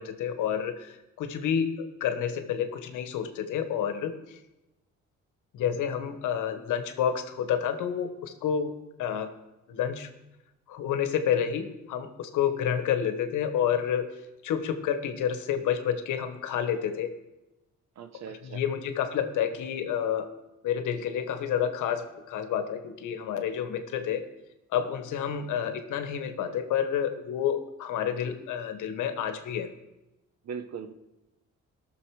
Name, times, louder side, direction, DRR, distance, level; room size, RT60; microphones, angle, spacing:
voice 1, 0.0-4.4 5.5-8.7 9.0-9.3 9.7-10.1 10.7-14.1 14.4-17.1 18.3-20.3 20.6-24.2 24.7-29.7, left 8 dB, 85° left, 8 dB, 1.3 m, -29 dB
voice 2, 18.0-18.6 30.4-30.9, right 6 dB, 60° right, 9 dB, 1.1 m, -39 dB
17.0 x 6.8 x 4.8 m, 0.99 s
cardioid pair, 90°, 30 cm